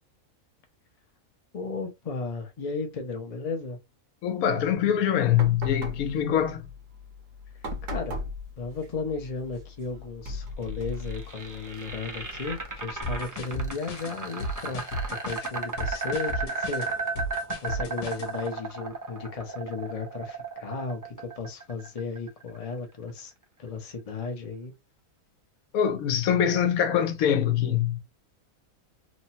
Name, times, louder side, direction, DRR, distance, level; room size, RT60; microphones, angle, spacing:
voice 1, 1.5-3.8 7.9-8.2 8.6-14.9 15.2-16.9 17.6-23.3 23.6-24.7, left 4 dB, 40° left, 0.6 m, -34 dB
voice 2, 4.2-6.6 25.7-28.0, left 9 dB, 85° left, 1.1 m, -24 dB
sound 1, 5.3-12.8, left 1 dB, 70° right, 1.1 m, -39 dB
sound 2, 10.7-22.7, right 4 dB, 30° right, 0.3 m, -35 dB
sound 3, 13.0-18.3, equal, 60° left, 1.1 m, -34 dB
3.1 x 2.1 x 2.7 m
omnidirectional pair, 1.5 m